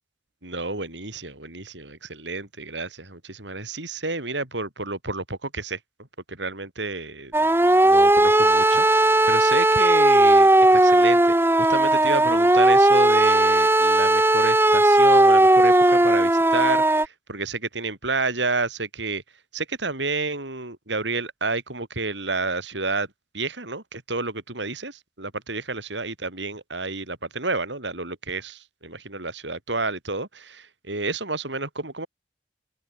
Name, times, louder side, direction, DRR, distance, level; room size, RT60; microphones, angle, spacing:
voice 1, 0.4-5.8 6.3-7.5 7.8-11.3 11.7-19.2 19.5-23.1 23.3-30.6 30.9-32.1, right 3 dB, 85° right, 6.6 m, -30 dB
sound 1, 7.3-17.1, right 1 dB, 15° right, 1.6 m, -17 dB
head